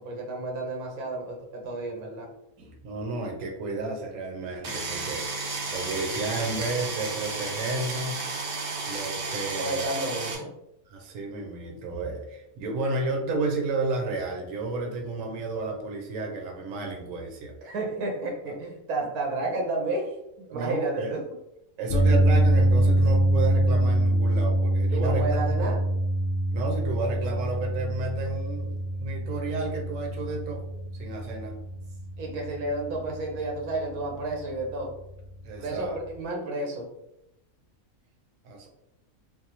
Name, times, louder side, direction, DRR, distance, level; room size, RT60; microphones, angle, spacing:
voice 1, 0.0-2.3 9.6-10.5 17.6-20.2 20.5-21.2 24.9-25.8 32.2-34.9 35.6-36.9, right 2 dB, 90° right, 1 dB, 1.2 m, -31 dB
voice 2, 2.6-8.2 8.9-9.9 10.9-17.5 20.5-21.1 21.8-25.7 26.5-30.7 31.0-31.5 35.4-36.0 38.4-38.7, right 2 dB, 70° right, 1 dB, 1.0 m, -32 dB
sound 1, 4.6-10.3, right 3 dB, 55° right, 0.7 m, -32 dB
sound 2, 21.9-36.2, right 1 dB, 65° left, 0.6 m, -25 dB
3.4 x 2.0 x 2.8 m, 0.84 s
omnidirectional pair, 1.5 m